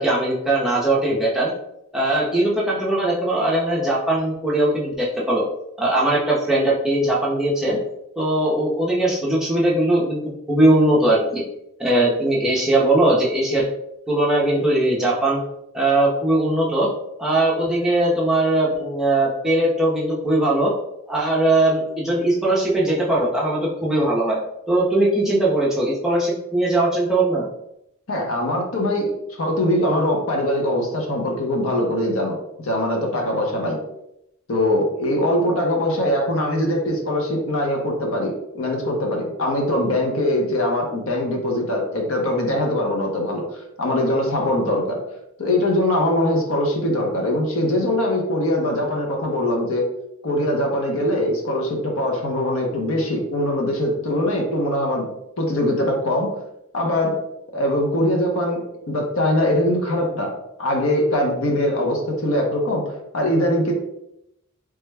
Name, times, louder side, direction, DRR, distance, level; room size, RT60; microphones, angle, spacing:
voice 1, 0.0-1.5 1.9-5.4 5.8-7.8 8.2-10.2 10.5-11.4 11.8-13.7 14.1-15.4 15.7-16.9 17.2-20.7 21.1-24.4 24.7-27.5, right 1 dB, ahead, -6 dB, 0.6 m, -20 dB
voice 2, 28.1-29.1 29.4-32.4 32.6-33.8 34.5-45.0 45.4-49.9 50.2-55.0 55.4-56.3 56.7-57.2 57.5-60.3 60.6-63.7, left 1 dB, 65° left, 1 dB, 0.7 m, -22 dB
3.3 x 2.1 x 3.2 m, 0.81 s
head